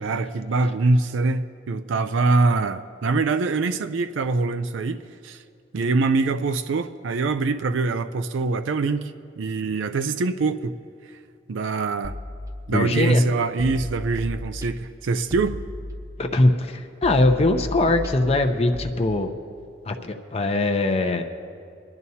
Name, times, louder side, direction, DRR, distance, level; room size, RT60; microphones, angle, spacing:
voice 1, 0.0-5.0 5.2-5.4 5.7-10.7 11.5-12.1 12.7-15.6, right 3 dB, 75° right, 10 dB, 0.4 m, -24 dB
sound 1, 12.0-13.0 13.6-14.9 15.3-16.4 17.0-18.9, left 1 dB, 20° right, 0.9 m, -35 dB
voice 2, 12.7-13.2 16.2-19.3 19.9-21.2, left 2 dB, 35° left, 4 dB, 0.6 m, -21 dB
25.5 x 10.5 x 2.8 m, 2.4 s
head